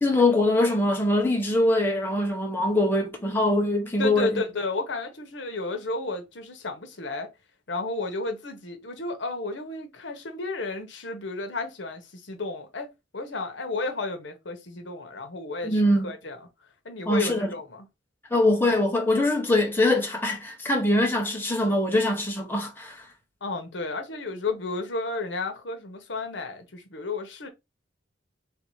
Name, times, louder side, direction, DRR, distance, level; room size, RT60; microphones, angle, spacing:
voice 1, 0.0-4.4 15.6-16.1 17.1-17.5 18.3-23.0, left 1 dB, 10° left, 0.9 m, -23 dB
voice 2, 4.0-7.3 7.7-12.9 13.1-16.4 16.8-17.8 23.4-27.5, left 3 dB, 70° left, 1.0 m, -32 dB
3.5 x 2.7 x 4.7 m
head